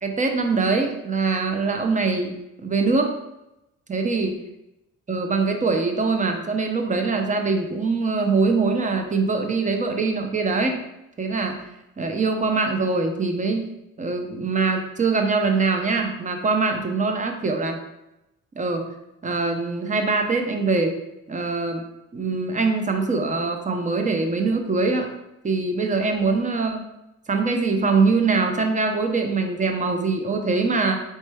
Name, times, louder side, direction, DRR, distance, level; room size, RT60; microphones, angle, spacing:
voice 1, 0.0-2.3 2.6-3.1 3.9-4.4 5.1-10.8 11.2-11.6 12.0-13.7 14.0-17.8 18.6-18.9 19.2-21.0 21.3-21.8 22.1-25.1 25.4-26.8 27.3-31.0, right 4 dB, 25° right, 4 dB, 0.7 m, -23 dB
4.3 x 3.2 x 3.4 m, 0.91 s
cardioid pair, 90°, 30 cm